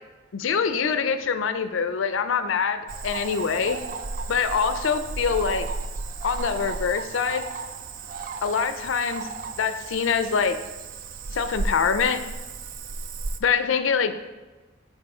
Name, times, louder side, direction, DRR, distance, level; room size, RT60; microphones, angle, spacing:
voice 1, 0.3-3.8 4.3-5.7 6.2-7.5 8.4-9.3 9.6-10.6 11.3-12.2 13.4-14.1, left 6 dB, 75° left, 10 dB, 0.4 m, -24 dB
Cricket / Frog, 2.9-13.4, right 3 dB, 45° right, 0.3 m, -34 dB
7.2 x 4.2 x 4.8 m, 1.2 s
head